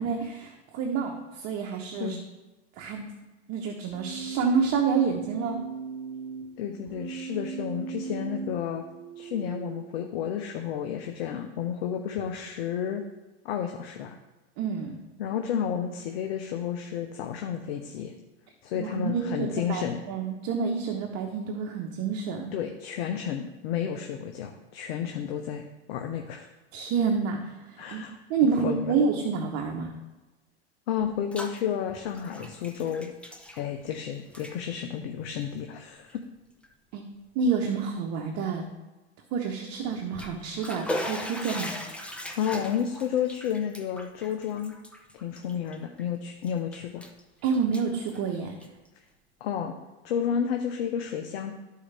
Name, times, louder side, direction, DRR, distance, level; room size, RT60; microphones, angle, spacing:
voice 1, 0.0-2.2 2.8-3.1 3.5-5.6 14.6-14.9 18.8-22.5 26.7-28.0 28.3-29.9 36.9-37.0 37.3-38.6 39.3-41.7 47.4-48.5, right 5 dB, 50° right, 2 dB, 1.1 m, -28 dB
Keyboard (musical), 3.9-9.9, right 6 dB, 20° right, 1.4 m, -38 dB
voice 2, 6.6-8.8 9.2-13.0 13.4-14.2 15.2-18.1 18.6-20.0 22.5-26.5 27.8-28.2 28.6-29.0 30.9-33.1 33.6-36.2 42.3-44.8 45.1-47.1 49.4-49.8 50.0-51.5, left 8 dB, 65° left, 4 dB, 0.9 m, -31 dB
Bathtub (filling or washing), 31.0-31.6 31.9-34.0 34.3-34.6 35.3-35.5 36.1-36.2 36.6-36.7 39.9-46.0 46.4-47.2 47.5-48.9, left 1 dB, 5° left, 0.9 m, -38 dB
12.5 x 4.7 x 3.4 m, 1.1 s
hypercardioid pair, 110°, 33 cm